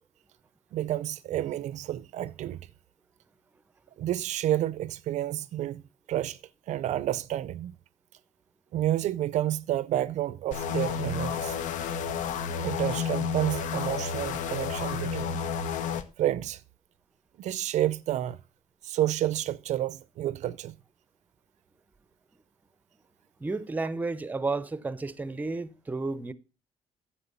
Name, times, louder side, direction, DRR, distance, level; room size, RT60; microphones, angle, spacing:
voice 1, 0.7-2.6 4.0-5.8 6.1-6.4 6.7-7.7 8.7-11.6 12.6-15.4 16.2-16.6 17.4-18.4 18.8-20.7, right 12 dB, 65° right, 0.5 m, -30 dB
sound 1, 10.5-16.0, left 6 dB, 75° left, 1.0 m, -31 dB
voice 2, 23.4-26.3, right 3 dB, 15° right, 0.6 m, -32 dB
9.9 x 7.8 x 5.4 m
cardioid pair, 140°, 13 cm